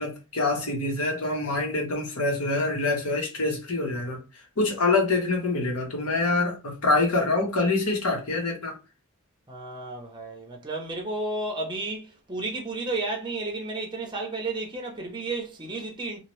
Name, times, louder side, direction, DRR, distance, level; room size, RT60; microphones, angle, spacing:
voice 1, 0.0-4.2 4.6-8.7, left 2 dB, 80° left, 1.1 m, -25 dB
voice 2, 9.5-16.2, right 2 dB, 20° right, 0.6 m, -32 dB
2.8 x 2.4 x 3.1 m
head